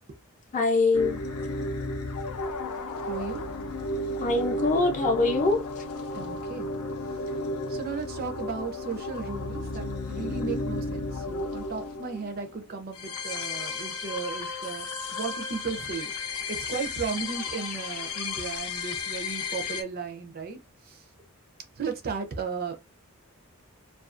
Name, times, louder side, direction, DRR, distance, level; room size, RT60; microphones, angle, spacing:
voice 1, 0.5-1.2 4.2-5.8, left 3 dB, 35° left, 0.5 m, -24 dB
sound 1, 0.9-19.8, left 2 dB, 80° left, 0.5 m, -33 dB
voice 2, 3.1-3.4 6.1-6.7 7.7-14.9 15.1-16.1 16.5-20.6 20.9-21.0 21.8-22.7, right 5 dB, 45° right, 0.5 m, -35 dB
2.4 x 2.3 x 2.4 m
head